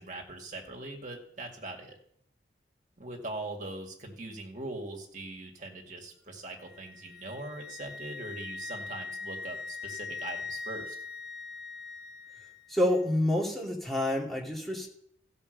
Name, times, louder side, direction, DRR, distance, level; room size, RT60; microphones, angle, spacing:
voice 1, 0.0-1.9 3.0-11.0, right 2 dB, 45° right, 1 dB, 2.1 m, -41 dB
Wind instrument woodwind instrument, 6.6-12.6, left 4 dB, 75° right, 1.0 m, -41 dB
voice 2, 12.7-14.9, left 1 dB, ahead, -3 dB, 2.6 m, -28 dB
15.5 x 5.4 x 6.6 m, 0.69 s
head